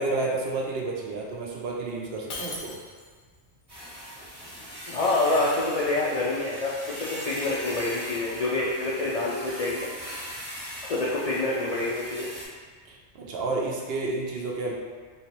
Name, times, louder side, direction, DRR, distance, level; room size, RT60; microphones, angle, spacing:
voice 1, 0.0-2.8 12.8-14.7, right 2 dB, 65° right, -1 dB, 0.7 m, -30 dB
Shatter, 2.3-3.3, left 2 dB, 85° left, 1.0 m, -38 dB
sound 1, 3.7-12.4, equal, 30° right, 1.0 m, -40 dB
voice 2, 4.9-10.2 10.9-12.3, left 2 dB, 65° left, -5 dB, 0.3 m, -27 dB
3.1 x 2.9 x 2.9 m, 1.6 s
omnidirectional pair, 1.2 m